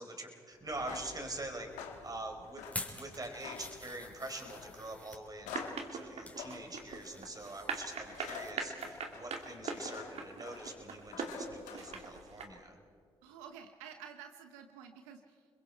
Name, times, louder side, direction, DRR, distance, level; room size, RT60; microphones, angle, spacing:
voice 1, 0.0-12.8, right 2 dB, 30° right, 4 dB, 4.4 m, -44 dB
sound 1, 0.6-12.5, left 7 dB, 80° left, 1.7 m, -50 dB
sound 2, 2.6-5.2 5.9-6.4 6.8-8.5 8.8-9.0 9.4-9.5, left 2 dB, 10° left, 3.8 m, -47 dB
sound 3, 5.5-12.4, right 5 dB, 60° right, 2.5 m, -40 dB
voice 2, 13.2-15.5, right 7 dB, 85° right, 7 dB, 0.8 m, -51 dB
29.5 x 21.5 x 4.5 m, 2.2 s
hypercardioid pair, 45°, 12 cm